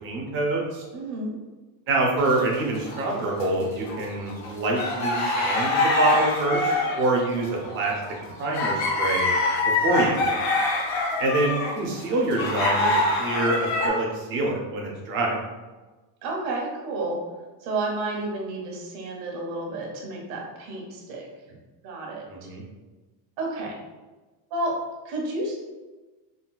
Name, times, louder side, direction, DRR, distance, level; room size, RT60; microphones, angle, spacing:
voice 1, 0.0-0.8 1.9-8.0 8.4-9.3 9.6-10.4 11.2-15.4 22.3-22.6, right 2 dB, 30° right, -1 dB, 0.4 m, -26 dB
voice 2, 0.9-1.3 16.2-17.2 17.6-21.3 21.8-22.2 23.4-23.7 24.5-24.8 25.0-25.6, right 2 dB, 75° right, -1 dB, 1.0 m, -31 dB
sound 1, 2.2-3.5 3.9-13.9, left 2 dB, 40° left, 0.5 m, -25 dB
3.8 x 2.2 x 2.3 m, 1.2 s
cardioid pair, 170°, 45 cm